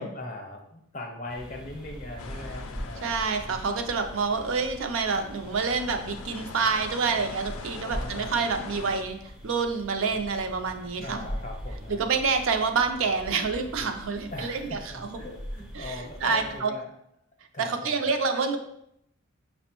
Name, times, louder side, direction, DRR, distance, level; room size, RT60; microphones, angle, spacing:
voice 1, 0.0-3.1 3.4-3.6 7.9-8.5 10.8-12.0 14.3-16.9 17.5-18.0, left 2 dB, 35° left, 2 dB, 0.6 m, -40 dB
sound 1, 1.3-16.6, equal, 5° right, 0.4 m, -42 dB
sound 2, 2.2-9.0, left 4 dB, 85° left, 0.4 m, -43 dB
voice 2, 3.0-9.2 9.4-11.2 12.0-15.2 15.7-16.7 17.6-18.6, right 5 dB, 70° right, 6 dB, 0.4 m, -27 dB
5.8 x 2.1 x 2.9 m, 0.75 s
head